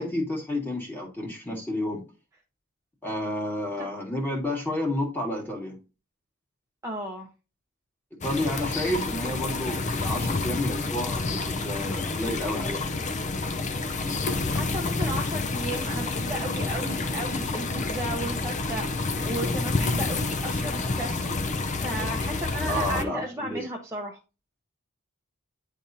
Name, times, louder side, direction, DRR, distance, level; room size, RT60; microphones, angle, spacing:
voice 1, 0.0-2.0 3.0-5.8 8.2-12.9 22.7-23.7, left 1 dB, 10° left, 2.0 m, -30 dB
voice 2, 6.8-7.3 14.5-24.2, right 1 dB, 15° right, 0.9 m, -35 dB
sound 1, 8.2-23.0, left 3 dB, 35° left, 0.6 m, -29 dB
10.0 x 3.5 x 2.7 m
head